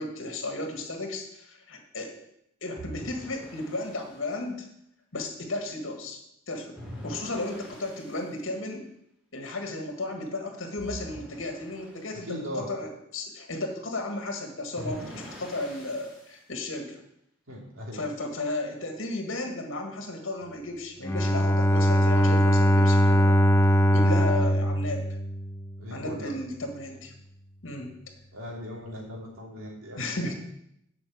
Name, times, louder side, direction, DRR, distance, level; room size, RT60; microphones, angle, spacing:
voice 1, 0.0-2.2 2.6-4.7 5.1-6.2 6.5-6.8 7.0-8.9 9.3-17.0 17.9-23.4 23.9-25.1 25.9-27.1 27.6-27.9 30.0-30.3, left 2 dB, 75° left, 3 dB, 1.8 m, -34 dB
sound 1, 2.8-4.2 6.7-8.3 10.8-12.1 14.7-16.3, equal, 5° right, 3.1 m, -43 dB
voice 2, 12.1-12.7 17.5-18.1 23.9-24.1 25.8-26.3 28.3-30.0, equal, 85° right, -2 dB, 3.0 m, -39 dB
Bowed string instrument, 21.0-25.8, equal, 10° left, 0.4 m, -21 dB
8.2 x 6.1 x 8.0 m, 0.77 s
head